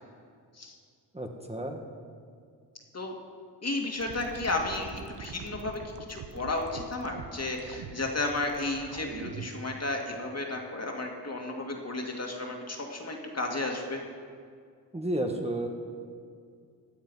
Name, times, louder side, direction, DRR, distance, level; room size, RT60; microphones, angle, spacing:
voice 1, 1.1-1.8 14.9-15.7, right 1 dB, 15° right, 2 dB, 1.4 m, -31 dB
voice 2, 3.6-5.8 6.1-14.0, left 2 dB, 35° left, 1 dB, 2.4 m, -33 dB
sound 1, 4.0-9.6, right 6 dB, 75° right, 1.1 m, -43 dB
16.0 x 8.7 x 5.5 m, 2.2 s
cardioid pair, 55°, 42 cm